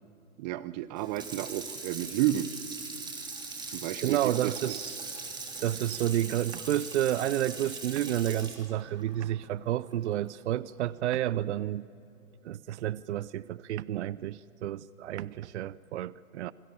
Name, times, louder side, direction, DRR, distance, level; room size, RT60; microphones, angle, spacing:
voice 1, 0.4-2.5 3.7-4.7, right 14 dB, 30° right, 16 dB, 0.9 m, -31 dB
Water tap faucet / Sink (filling or washing), 1.0-10.2 10.6-10.7, right 4 dB, 10° right, 3.3 m, -41 dB
voice 2, 4.0-5.0 5.6-11.9 12.4-16.5, right 12 dB, 55° right, 20 dB, 0.6 m, -30 dB
28.0 x 21.0 x 7.0 m, 2.8 s
hypercardioid pair, 130°, 42 cm